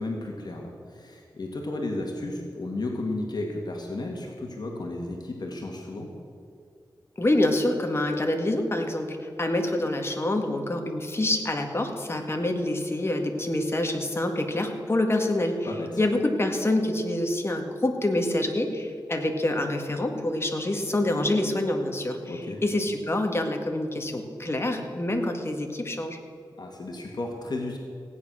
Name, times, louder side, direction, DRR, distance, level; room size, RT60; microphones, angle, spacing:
voice 1, 0.0-6.1 15.6-16.0 22.3-22.6 26.6-27.8, left 2 dB, 60° left, 1 dB, 1.9 m, -33 dB
voice 2, 7.2-15.6 16.0-22.2 22.6-26.2, left 1 dB, 30° left, 4 dB, 1.8 m, -26 dB
16.0 x 9.7 x 6.3 m, 2.4 s
wide cardioid pair, 70°, 8 cm